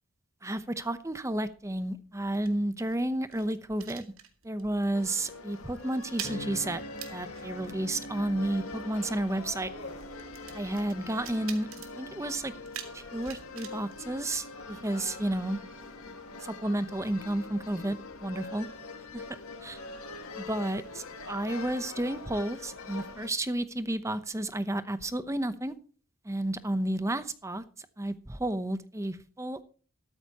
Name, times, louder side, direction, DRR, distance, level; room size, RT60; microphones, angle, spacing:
voice 1, 0.4-4.1 4.4-6.8 7.1-9.7 10.5-11.7 12.0-12.5 12.9-15.6 16.4-18.7 19.1-19.2 19.6-19.8 20.4-25.7 26.2-27.6 28.0-29.6, right 1 dB, 15° right, 13 dB, 0.8 m, -32 dB
sound 1, 1.5-4.7 5.0-5.3 5.5-14.9, right 9 dB, 80° right, 2.2 m, -47 dB
sound 2, 4.9-23.3, left 3 dB, 90° left, 2.0 m, -44 dB
sound 3, 6.2-20.7 21.2-21.7, right 1 dB, 40° left, 4.5 m, -49 dB
13.5 x 13.0 x 3.0 m, 0.40 s
head